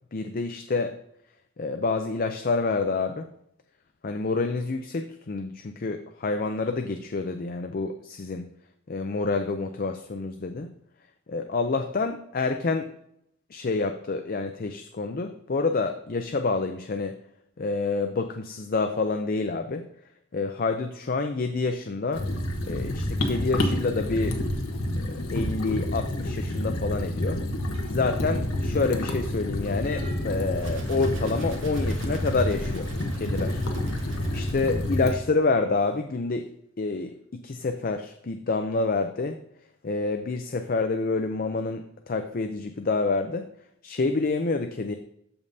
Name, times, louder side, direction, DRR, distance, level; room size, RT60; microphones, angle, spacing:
voice 1, 0.1-1.0 1.6-3.3 4.0-8.5 8.9-10.7 11.3-12.9 13.5-17.2 17.6-19.9 20.3-22.3 22.7-24.4 25.0-27.4 27.9-32.9 33.2-33.7 34.0-36.5 36.8-37.1 37.4-39.4 39.8-43.5 43.8-45.0, left 3 dB, 45° left, 6 dB, 0.5 m, -28 dB
sound 1, 22.1-35.1, left 1 dB, 85° left, 1.3 m, -29 dB
sound 2, 26.5-27.0 27.7-28.6 29.8-30.6, left 1 dB, 25° right, 1.6 m, -45 dB
sound 3, 30.6-35.5, right 1 dB, 60° right, 1.3 m, -41 dB
13.5 x 5.4 x 2.7 m, 0.73 s
head